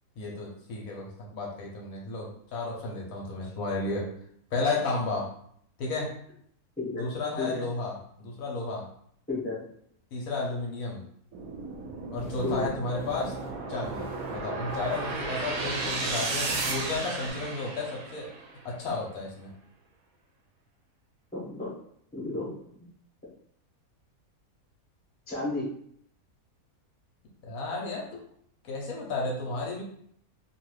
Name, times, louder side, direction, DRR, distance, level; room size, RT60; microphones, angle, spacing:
voice 1, 0.2-4.1 4.5-5.3 5.8-6.1 7.0-8.8 10.1-11.0 12.1-13.3 13.7-18.3 18.6-19.5 27.4-28.2 28.6-29.8, left 3 dB, 70° left, -2 dB, 1.1 m, -33 dB
voice 2, 7.4-7.7 9.3-9.6 12.4-12.7 21.3-21.7 22.1-22.9 25.3-25.7, left 2 dB, 10° left, -6 dB, 0.8 m, -32 dB
sound 1, 11.3-18.6, right 3 dB, 70° right, 1.0 m, -34 dB
sound 2, 12.2-17.3, right 1 dB, 20° right, 0.4 m, -45 dB
2.7 x 2.4 x 3.1 m, 0.66 s
omnidirectional pair, 1.6 m